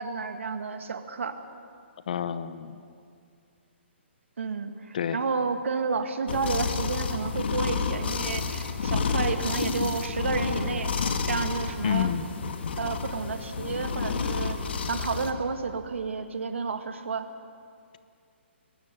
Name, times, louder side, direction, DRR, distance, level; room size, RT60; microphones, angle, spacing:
voice 1, 0.0-1.4 4.4-12.1 12.8-14.6 14.8-17.3, right 5 dB, 85° right, 7 dB, 2.0 m, -31 dB
voice 2, 2.1-2.8 4.9-5.2 11.8-12.3, left 8 dB, 45° left, 13 dB, 0.8 m, -29 dB
sound 1, 6.3-15.3, left 5 dB, 60° left, 1.7 m, -30 dB
22.5 x 12.5 x 9.8 m, 2.3 s
hypercardioid pair, 170°, 7 cm